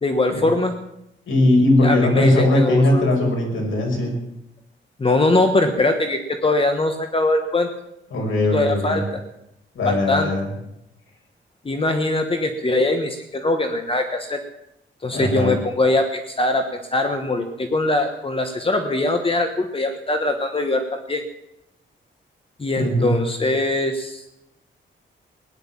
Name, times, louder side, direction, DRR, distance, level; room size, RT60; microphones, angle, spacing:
voice 1, 0.0-0.8 1.8-3.1 5.0-7.7 8.5-9.2 9.8-10.3 11.6-14.4 15.0-21.2 22.6-24.2, left 2 dB, 25° left, 6 dB, 1.3 m, -22 dB
voice 2, 1.3-4.1 8.1-9.0 9.7-10.5 15.1-15.5 22.8-23.1, left 1 dB, 75° left, 0 dB, 6.1 m, -19 dB
17.5 x 10.5 x 7.3 m, 0.84 s
wide cardioid pair, 145°, 21 cm